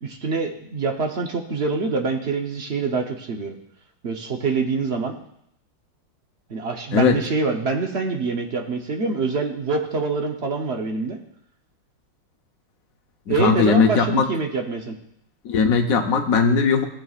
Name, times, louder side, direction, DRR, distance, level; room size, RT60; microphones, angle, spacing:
voice 1, 0.0-3.6 4.0-5.2 6.5-11.2 13.3-15.0, right 4 dB, 50° right, 3 dB, 0.8 m, -25 dB
voice 2, 13.3-14.2 15.4-16.9, left 5 dB, 55° left, 4 dB, 1.1 m, -19 dB
15.5 x 7.9 x 2.4 m, 0.73 s
omnidirectional pair, 2.1 m